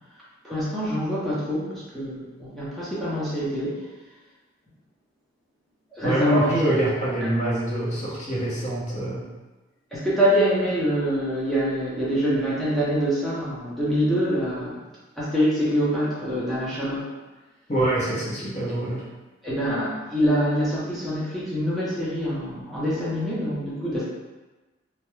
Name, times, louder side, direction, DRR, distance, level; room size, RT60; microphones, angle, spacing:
voice 1, 0.4-3.8 5.9-6.5 9.9-14.8 15.2-17.1 19.4-24.0, equal, ahead, -9 dB, 0.6 m, -25 dB
voice 2, 6.0-9.3 17.7-19.1, right 1 dB, 35° left, -7 dB, 0.7 m, -25 dB
2.3 x 2.1 x 3.0 m, 1.2 s
head